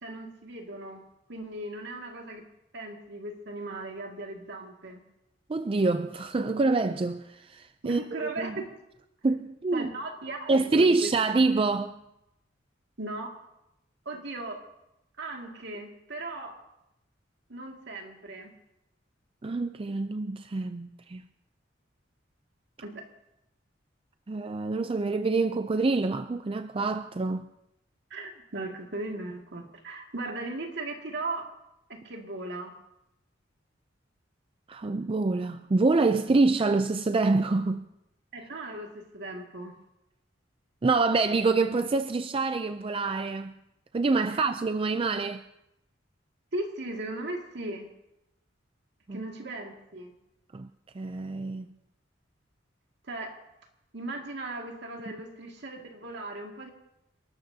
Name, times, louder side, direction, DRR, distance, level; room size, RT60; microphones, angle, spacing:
voice 1, 0.0-1.0 1.3-2.4 2.7-5.0 7.8-8.7 9.7-11.1 13.0-13.4 14.1-14.6 15.2-16.6 17.5-18.5 22.8-23.1 28.1-31.5 31.9-32.7 38.3-39.7 44.3-44.4 46.5-47.9 49.1-50.1 53.1-53.4 53.9-56.7, right 2 dB, 65° right, 2.1 m, -37 dB
voice 2, 5.5-8.0 8.4-8.6 9.2-9.9 10.5-12.0 19.4-21.2 24.3-27.5 34.7-37.8 40.8-43.5 43.9-45.4 49.1-49.2 50.5-50.7 50.9-51.7, right 3 dB, 30° right, 0.4 m, -26 dB
29.5 x 12.5 x 2.8 m
head